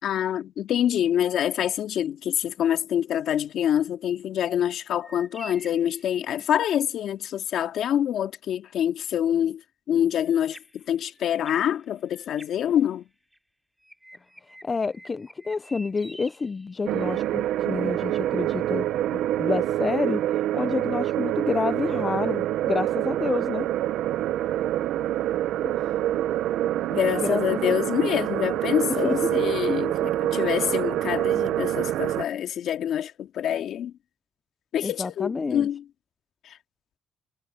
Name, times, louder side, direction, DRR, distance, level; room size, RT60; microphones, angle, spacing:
voice 1, 0.0-9.6 9.9-13.1 26.9-33.9 34.7-35.8 36.4-36.6, left 10 dB, 75° left, 2.2 m, -26 dB
sound 1, 5.0-6.7 10.2-13.4 13.8-17.2, equal, 5° right, 6.6 m, -49 dB
voice 2, 14.6-18.9 19.4-20.2 20.5-23.7 25.6-25.7 27.2-27.8 29.0-29.3 34.8-35.7, left 4 dB, 30° left, 0.6 m, -28 dB
sound 2, 16.9-32.2, right 13 dB, 85° right, 0.6 m, -26 dB
cardioid pair, 90°, 0 cm